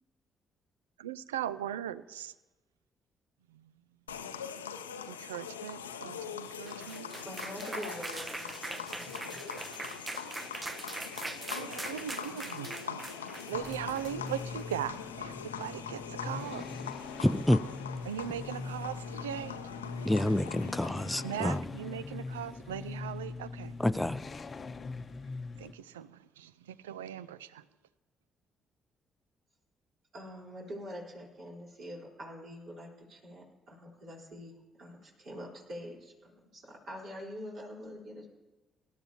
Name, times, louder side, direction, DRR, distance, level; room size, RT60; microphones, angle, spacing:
voice 1, 1.0-2.3 3.5-3.7 5.1-7.1 11.5-13.1 13.5-16.8 18.0-19.6 21.2-23.8 25.6-27.6, right 10 dB, 80° right, 0.4 m, -39 dB
sound 1, 4.1-21.6, left 7 dB, 80° left, 0.6 m, -42 dB
sound 2, 6.4-14.7, right 2 dB, 20° right, 0.8 m, -42 dB
voice 2, 7.2-9.4 30.1-34.5 34.8-38.3, equal, 55° right, 4.1 m, -45 dB
sound 3, 13.5-25.7, left 4 dB, 35° left, 0.8 m, -42 dB
voice 3, 17.2-17.6 20.0-21.7 23.8-24.2, left 1 dB, 5° left, 0.5 m, -28 dB
24.5 x 12.0 x 2.9 m
figure-of-eight pair, 45°, 0 cm